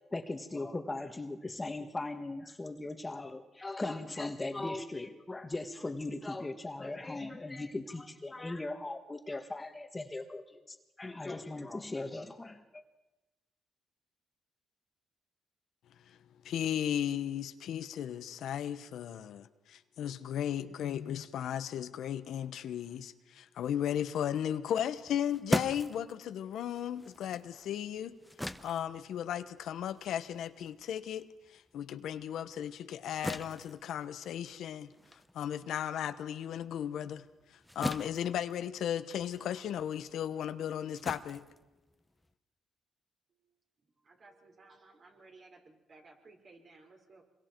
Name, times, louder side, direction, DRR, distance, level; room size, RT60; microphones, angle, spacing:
voice 1, 0.1-12.8, left 2 dB, 20° left, 1.5 m, -39 dB
voice 2, 16.4-28.2 28.6-34.9 35.3-37.2 37.5-41.5, left 10 dB, 75° left, 1.0 m, -35 dB
sound 1, 25.0-31.8 32.1-42.3, equal, 5° left, 0.8 m, -41 dB
voice 3, 43.3-47.2, right 3 dB, 45° right, 4.9 m, -58 dB
26.0 x 22.0 x 4.6 m
cardioid pair, 90°, 0 cm